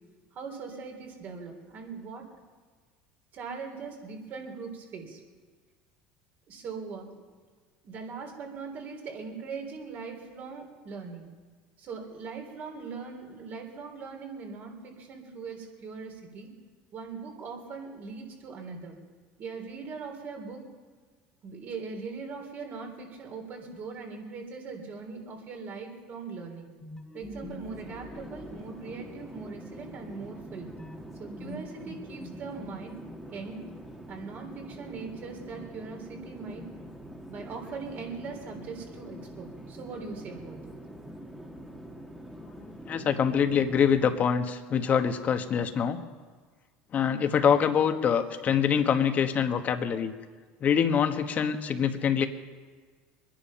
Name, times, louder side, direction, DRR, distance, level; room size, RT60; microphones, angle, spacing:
voice 1, 0.3-2.3 3.3-5.2 6.5-7.1 7.8-11.3 11.8-16.5 16.9-19.0 19.4-20.6 21.4-26.7 27.1-30.7 31.2-33.0 33.3-33.6 34.1-36.7 37.3-40.7, right 5 dB, 50° right, 3 dB, 3.5 m, -40 dB
sound 1, 26.8-29.4 30.8-33.2, left 1 dB, 15° left, 1.7 m, -45 dB
Conversation / Chatter / Fixed-wing aircraft airplane, 27.7-44.4, right 1 dB, 5° right, 1.6 m, -45 dB
voice 2, 42.9-46.0 46.9-50.1 50.6-52.3, left 7 dB, 40° left, 7 dB, 1.3 m, -25 dB
23.0 x 10.5 x 5.7 m, 1.5 s
supercardioid pair, 105°, 4 cm